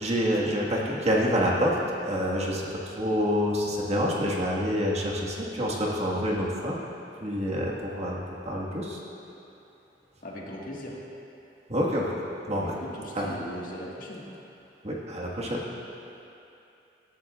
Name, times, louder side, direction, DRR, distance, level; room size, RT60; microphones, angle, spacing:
voice 1, 0.0-1.8 2.0-6.8 7.2-8.2 8.4-9.0 11.7-12.2 12.5-12.8 13.1-13.3 14.8-15.6, equal, 40° right, -4 dB, 1.7 m, -27 dB
voice 2, 10.2-11.0 12.9-14.2, equal, 50° left, -3 dB, 1.8 m, -39 dB
17.5 x 13.0 x 2.5 m, 2.8 s
head